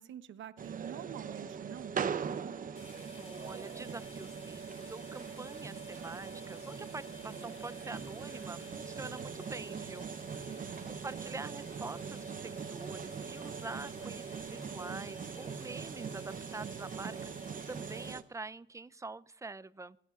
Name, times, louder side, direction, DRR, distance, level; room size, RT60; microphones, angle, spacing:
voice 1, 0.0-2.5 10.5-11.0, right 10 dB, 75° right, 14 dB, 0.8 m, -47 dB
sound 1, 0.6-18.2, right 6 dB, 45° right, 0.8 m, -41 dB
sound 2, 2.7-18.1, left 3 dB, 30° left, 6.4 m, -54 dB
voice 2, 3.1-10.1 10.9-20.0, right 3 dB, 15° right, 18 dB, 0.5 m, -45 dB
27.0 x 17.5 x 2.5 m, 0.78 s
cardioid pair, 90°, 20 cm